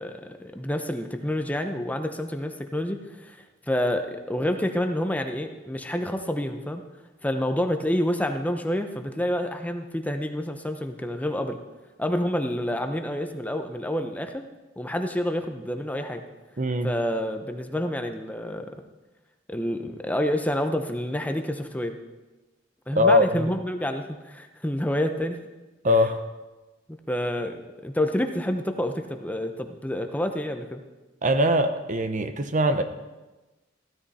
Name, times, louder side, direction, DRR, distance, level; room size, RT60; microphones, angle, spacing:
voice 1, 0.0-3.4 3.7-6.8 7.2-11.6 12.0-14.5 14.8-16.2 16.8-18.8 19.5-22.0 22.9-25.4 27.1-30.8, left 1 dB, 10° left, 6 dB, 0.8 m, -28 dB
voice 2, 16.6-16.9 22.9-23.5 25.8-26.2 31.2-32.8, left 1 dB, 40° right, 9 dB, 0.9 m, -21 dB
15.5 x 13.0 x 4.3 m, 1.1 s
head